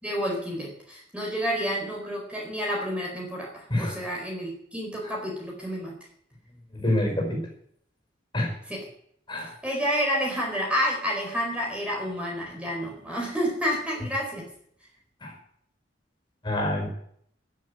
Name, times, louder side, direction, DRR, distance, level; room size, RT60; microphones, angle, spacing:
voice 1, 0.0-5.9 8.7-8.8 9.6-14.4, equal, 5° right, -2 dB, 4.4 m, -29 dB
voice 2, 6.7-7.4 8.3-8.5 9.3-9.5 15.2-15.3 16.4-16.9, left 1 dB, 25° left, 2 dB, 5.1 m, -26 dB
15.5 x 7.5 x 9.6 m, 0.66 s
head